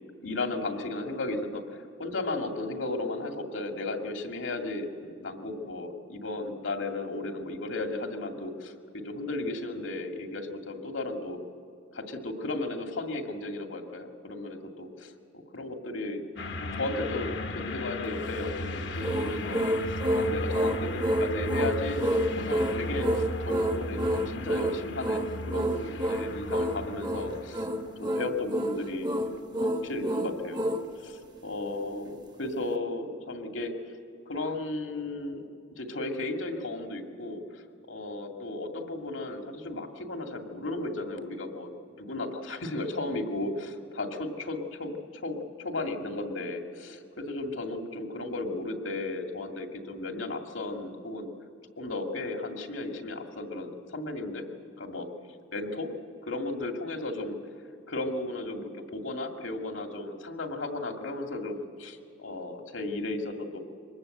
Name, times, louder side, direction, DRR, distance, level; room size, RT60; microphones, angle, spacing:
voice 1, 0.2-11.4 11.9-16.3 16.6-29.1 29.6-30.7 31.0-33.9 34.3-35.5 35.8-41.7 42.0-51.3 51.8-54.5 54.8-55.1 55.5-55.9 56.2-57.4 57.9-63.6, left 2 dB, 80° left, 4 dB, 2.2 m, -35 dB
sound 1, 16.4-27.8, left 2 dB, 60° left, 1.2 m, -36 dB
sound 2, 19.0-30.9, right 1 dB, 20° right, 1.1 m, -29 dB
24.0 x 20.0 x 7.9 m, 2.6 s
head